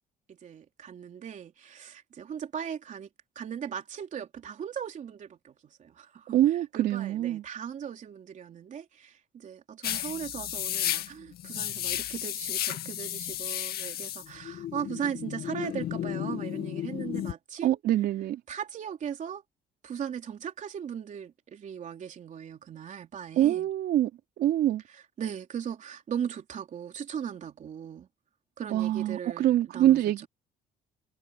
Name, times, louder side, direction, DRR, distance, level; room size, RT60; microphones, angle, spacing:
voice 1, 0.3-3.1 3.3-17.8 18.5-19.4 19.8-23.7 24.9-28.1 28.6-30.3, right 8 dB, 45° right, 3.5 m, -38 dB
voice 2, 6.3-7.4 17.6-18.4 23.4-24.1 24.4-24.8 28.7-30.3, right 13 dB, 70° right, 3.9 m, -25 dB
sound 1, 9.8-17.3, left 12 dB, 65° left, 2.1 m, -33 dB
cardioid pair, 110°, 17 cm